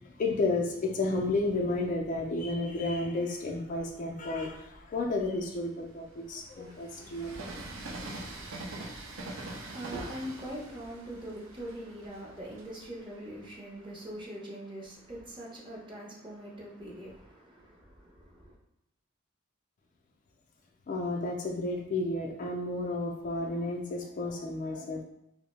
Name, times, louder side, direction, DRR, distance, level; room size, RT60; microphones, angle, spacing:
voice 1, 0.0-7.4 20.9-25.0, left 2 dB, 40° left, 0.4 m, -32 dB
Train, 1.2-2.9 3.5-14.1, right 2 dB, 80° right, 0.5 m, -45 dB
voice 2, 9.2-18.6, right 1 dB, 25° right, 0.7 m, -42 dB
2.6 x 2.0 x 3.1 m
head